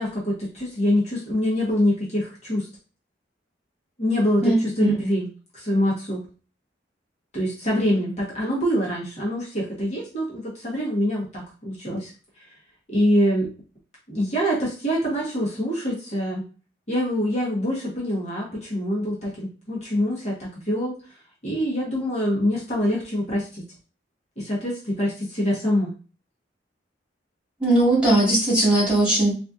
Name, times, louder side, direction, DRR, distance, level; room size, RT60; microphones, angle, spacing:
voice 1, 0.0-2.7 4.0-6.2 7.3-12.1 12.4-12.5 12.9-13.5 14.1-16.5 16.9-21.0 21.4-23.6 24.4-25.9, equal, 40° left, -5 dB, 1.2 m, -25 dB
voice 2, 4.4-5.0 27.6-29.3, right 1 dB, 5° right, -7 dB, 1.9 m, -19 dB
4.1 x 2.6 x 2.4 m, 0.35 s
head